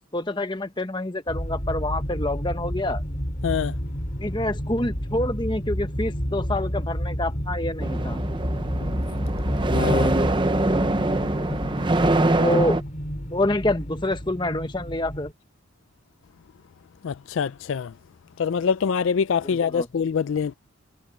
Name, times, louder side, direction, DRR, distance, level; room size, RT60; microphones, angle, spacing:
voice 1, 0.1-3.0 4.2-8.2 12.4-12.8 13.3-15.3 19.4-19.9, left 1 dB, 20° left, 1.2 m, -27 dB
sound 1, 1.3-15.3, equal, 35° left, 4.4 m, -30 dB
voice 2, 3.4-3.8 8.8-8.9 9.7-10.2 17.0-17.9 18.4-20.5, left 6 dB, 70° left, 0.4 m, -25 dB
sound 2, 7.8-12.8, right 2 dB, 25° right, 0.7 m, -23 dB
head